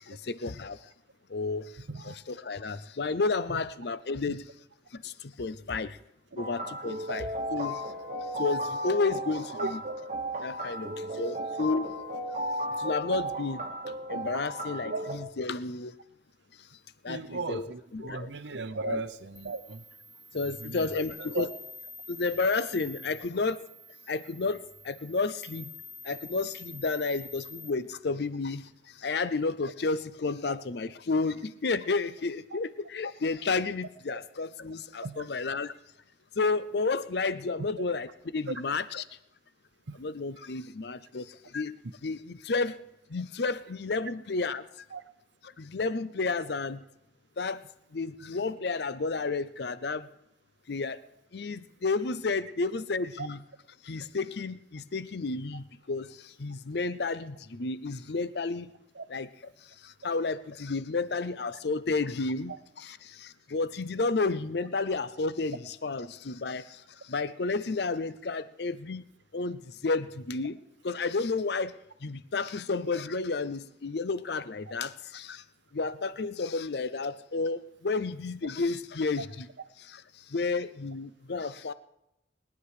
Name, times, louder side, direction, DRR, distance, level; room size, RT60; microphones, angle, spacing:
voice 1, 0.1-0.8 1.3-1.7 2.0-4.4 4.9-6.0 6.4-7.8 8.3-9.8 10.4-12.0 12.8-13.7 14.1-16.0 17.0-18.3 18.8-19.0 20.3-21.5 22.1-23.6 24.1-25.7 26.0-35.7 36.4-39.1 39.9-42.8 43.1-44.7 45.4-46.8 47.4-47.6 47.9-50.1 50.7-51.0 51.3-53.4 53.8-58.7 59.1-59.3 59.8-69.1 69.3-75.4 75.7-79.5 79.8-80.0 80.3-81.7, left 3 dB, 60° left, 15 dB, 0.6 m, -31 dB
sound 1, 6.4-15.2, right 1 dB, 40° right, 1.2 m, -35 dB
voice 2, 17.1-19.8 20.4-20.9 21.2-21.5 30.4-30.5 34.1-34.2 35.0-35.3 39.9-40.0 44.9-45.0 59.0-59.1, right 3 dB, 70° right, 12 dB, 0.8 m, -36 dB
sound 2, 19.4-27.7, left 2 dB, 10° left, 2.6 m, -46 dB
21.0 x 9.7 x 4.9 m, 0.85 s
head